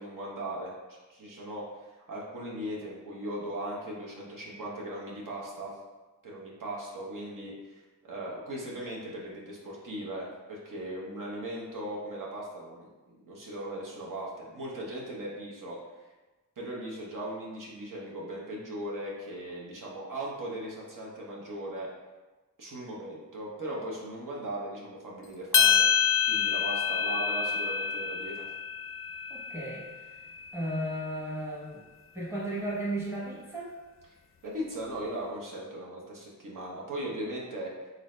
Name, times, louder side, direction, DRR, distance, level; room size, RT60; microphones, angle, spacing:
voice 1, 0.0-1.7 2.1-5.7 6.2-15.8 16.6-21.9 22.6-25.9 26.3-28.4 34.4-37.7, right 1 dB, 70° right, -4 dB, 0.8 m, -38 dB
sound 1, 25.5-29.9, left 7 dB, 40° left, 0.4 m, -27 dB
voice 2, 29.3-29.8 30.5-31.8 32.1-33.7, right 1 dB, 5° right, -6 dB, 1.0 m, -34 dB
3.9 x 2.6 x 3.2 m, 1.2 s
wide cardioid pair, 130°, 33 cm